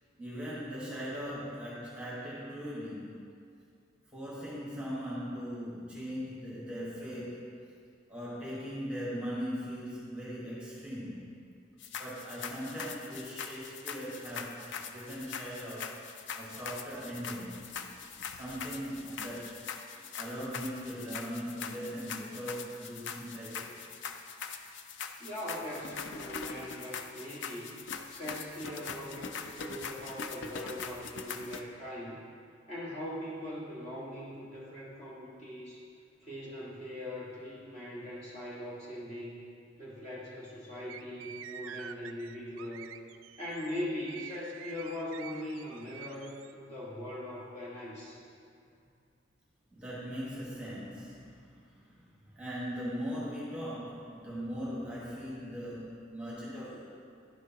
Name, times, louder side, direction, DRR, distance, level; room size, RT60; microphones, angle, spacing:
voice 1, 0.2-3.2 4.1-7.5 8.1-11.3 12.0-16.0 16.3-17.6 17.9-18.0 18.3-19.7 20.1-23.9 49.7-56.9, equal, 5° right, -8 dB, 1.4 m, -40 dB
sound 1, 11.8-31.6, left 6 dB, 60° left, 0.4 m, -42 dB
voice 2, 25.2-27.7 28.1-32.2 32.7-35.8 36.2-39.4 39.8-43.0 43.4-48.2, left 1 dB, 35° left, -7 dB, 1.6 m, -41 dB
sound 2, 40.9-46.5, right 9 dB, 80° right, 0.3 m, -48 dB
10.5 x 6.3 x 2.9 m, 2.3 s
head